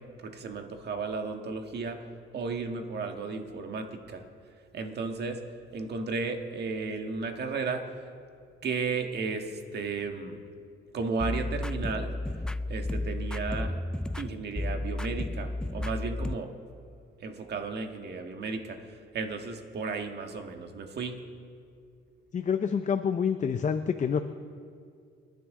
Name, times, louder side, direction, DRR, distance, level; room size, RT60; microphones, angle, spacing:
voice 1, 0.2-2.0 2.3-4.2 4.7-5.4 5.7-7.8 8.6-10.4 10.9-12.1 12.7-13.8 14.1-16.5 17.2-21.2, right 4 dB, 55° right, 4 dB, 1.7 m, -34 dB
sound 1, 11.0-16.4, left 2 dB, 5° left, 0.3 m, -32 dB
voice 2, 22.3-24.2, left 7 dB, 40° left, 8 dB, 0.6 m, -27 dB
27.5 x 10.5 x 3.8 m, 2.3 s
cardioid pair, 90°, 20 cm